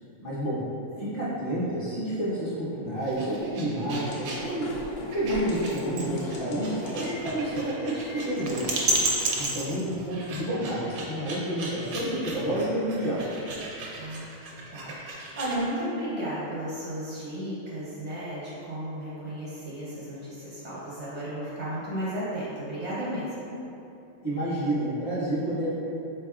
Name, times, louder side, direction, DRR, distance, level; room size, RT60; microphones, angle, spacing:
voice 1, 0.2-0.6 1.0-4.7 5.1-8.8 9.4-13.2 24.2-25.7, right 1 dB, 35° left, -10 dB, 0.7 m, -29 dB
sound 1, 3.0-15.6, right 2 dB, 85° right, 1.1 m, -34 dB
sound 2, 3.9-9.5, left 1 dB, 75° left, 1.0 m, -39 dB
voice 2, 9.5-9.8 14.0-14.3 14.7-23.3, right 1 dB, 45° right, -9 dB, 0.5 m, -34 dB
4.0 x 3.4 x 2.3 m, 2.9 s
omnidirectional pair, 1.4 m